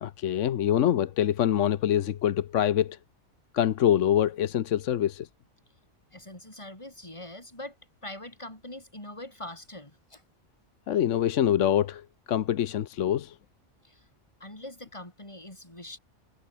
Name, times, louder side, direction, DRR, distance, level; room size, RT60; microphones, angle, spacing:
voice 1, 0.0-3.0 3.5-5.3 10.9-13.3, left 10 dB, 80° left, 1.1 m, -25 dB
voice 2, 6.1-7.8 8.0-10.2 13.8-14.1 14.4-16.0, left 1 dB, 25° left, 4.6 m, -43 dB
omnidirectional pair, 1.3 m